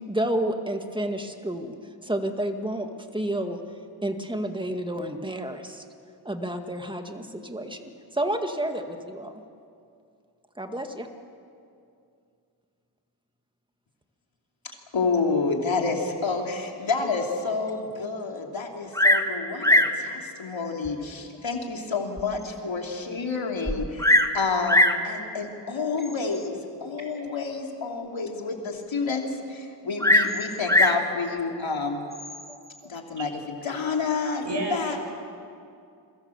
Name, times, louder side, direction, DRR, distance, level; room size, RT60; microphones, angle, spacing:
voice 1, 0.0-1.8 2.0-3.6 4.0-5.8 6.3-9.3 10.6-11.1, right 1 dB, 10° right, 5 dB, 2.0 m, -30 dB
voice 2, 14.9-32.0 32.9-35.0, left 4 dB, 85° left, 1 dB, 3.1 m, -29 dB
Bird vocalization bird call bird song, 18.9-19.3 19.6-20.0 20.9-21.0 21.6-21.7 22.2-22.3 22.5-22.6 23.7-24.4 24.7-25.0 26.0-26.4 30.0-31.0 32.1-32.6, left 1 dB, 5° left, 1.4 m, -20 dB
voice 3, 34.4-35.0, right 1 dB, 70° right, 2 dB, 5.7 m, -31 dB
29.0 x 22.5 x 7.3 m, 2.4 s
wide cardioid pair, 95°, 45 cm